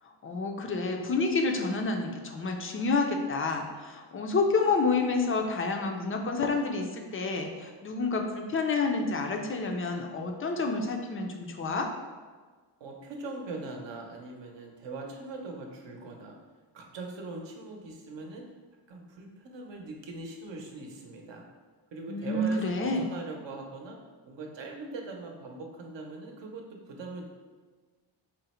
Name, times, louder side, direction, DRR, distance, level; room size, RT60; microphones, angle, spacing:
voice 1, 0.2-11.9 22.1-23.1, left 3 dB, 30° left, 3 dB, 0.4 m, -29 dB
voice 2, 12.8-16.4 16.7-18.4 18.9-21.4 21.9-24.0 24.2-27.3, right 3 dB, 65° right, 1 dB, 0.8 m, -41 dB
3.8 x 2.1 x 4.2 m, 1.4 s
cardioid pair, 110°, 47 cm